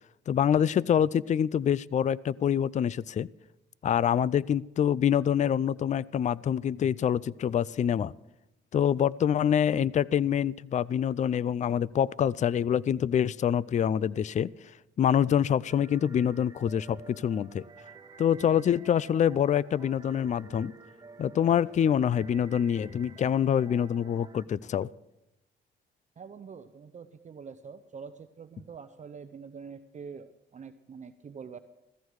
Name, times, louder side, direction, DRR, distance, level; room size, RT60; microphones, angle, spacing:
voice 1, 0.3-3.3 3.8-8.1 8.7-14.5 15.0-17.6 18.2-20.7 21.2-24.9, left 9 dB, 35° left, 22 dB, 0.4 m, -26 dB
sound 1, 15.7-24.4, right 4 dB, 20° right, 1.4 m, -51 dB
voice 2, 26.2-31.6, right 6 dB, 35° right, 9 dB, 0.7 m, -45 dB
16.0 x 14.5 x 4.7 m, 0.93 s
cardioid pair, 90°, 20 cm